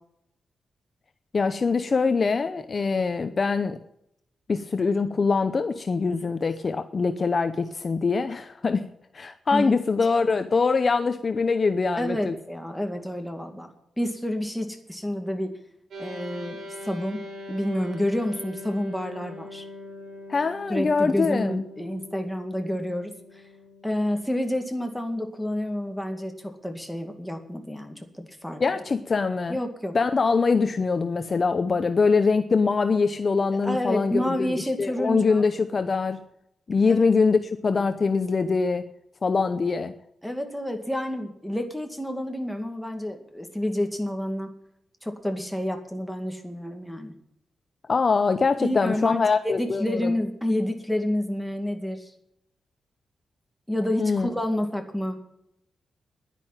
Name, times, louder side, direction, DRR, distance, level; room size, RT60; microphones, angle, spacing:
voice 1, 1.3-3.8 4.5-8.9 9.1-12.4 20.3-21.6 28.6-29.6 29.9-36.2 36.7-38.9 39.2-39.9 47.9-50.1 54.0-54.3, left 4 dB, 35° left, 9 dB, 0.7 m, -23 dB
voice 2, 11.9-13.7 14.0-15.5 16.0-19.6 20.7-23.1 23.8-28.6 29.5-30.0 33.6-35.4 36.9-37.0 40.2-44.5 45.0-47.1 48.6-52.1 53.7-55.2, left 1 dB, ahead, 3 dB, 2.2 m, -29 dB
sound 1, 15.9-27.4, left 2 dB, 70° right, 5.3 m, -43 dB
11.0 x 10.5 x 8.9 m, 0.79 s
wide cardioid pair, 130°, 0 cm